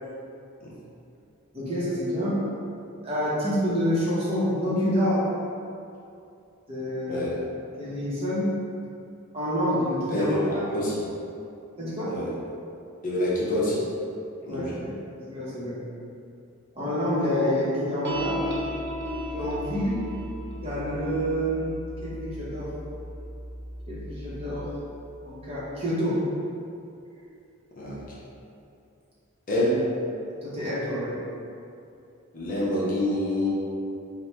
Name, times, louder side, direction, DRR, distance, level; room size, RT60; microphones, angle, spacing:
voice 1, 1.5-2.4 3.0-5.2 6.7-7.3 7.8-8.5 9.3-10.6 11.8-12.1 14.4-14.9 15.3-15.8 16.7-18.4 19.3-20.0 20.6-21.8 22.0-22.7 23.9-24.7 25.2-26.2 30.4-31.1, equal, 25° right, -9 dB, 0.8 m, -27 dB
voice 2, 10.1-10.4 10.7-10.9 12.1-12.3 13.0-13.8 14.5-14.8 27.8-28.0 29.5-29.8 32.3-33.5, left 1 dB, 35° left, -7 dB, 0.6 m, -26 dB
sound 1, 18.0-24.7, equal, 50° right, 0.3 m, -35 dB
4.1 x 2.1 x 3.3 m, 2.6 s
head